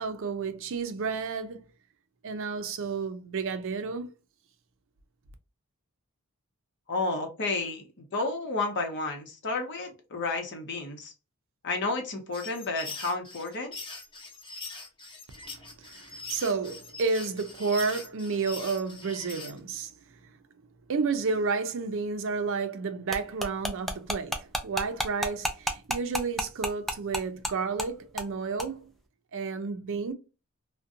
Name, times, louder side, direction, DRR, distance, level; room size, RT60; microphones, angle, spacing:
voice 1, 0.0-1.6 2.2-4.1 15.8-19.9 20.9-28.9 29.3-30.1, right 4 dB, 65° right, 0.5 m, -31 dB
voice 2, 6.9-7.8 8.1-11.1 11.6-13.7, left 3 dB, 55° left, 0.8 m, -31 dB
sound 1, 12.3-19.6, left 3 dB, 25° left, 0.7 m, -42 dB
sound 2, 23.1-27.5 27.8-27.9 28.2-28.3 28.6-28.7, equal, ahead, 0.3 m, -30 dB
2.6 x 2.1 x 2.5 m
head